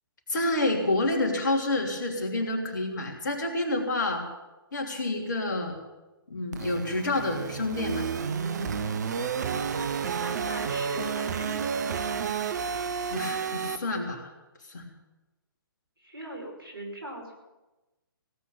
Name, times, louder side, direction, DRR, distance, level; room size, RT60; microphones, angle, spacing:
voice 1, 0.3-4.2 4.7-5.8 6.3-8.1 13.1-14.3 14.7-14.8, left 2 dB, 55° left, 3 dB, 3.1 m, -28 dB
sound 1, 6.5-13.8, right 6 dB, 50° right, 1.0 m, -31 dB
voice 2, 10.0-11.9 16.0-17.3, right 1 dB, 75° right, 1 dB, 5.3 m, -40 dB
17.0 x 8.4 x 8.6 m, 1.1 s
figure-of-eight pair, 130°, 12 cm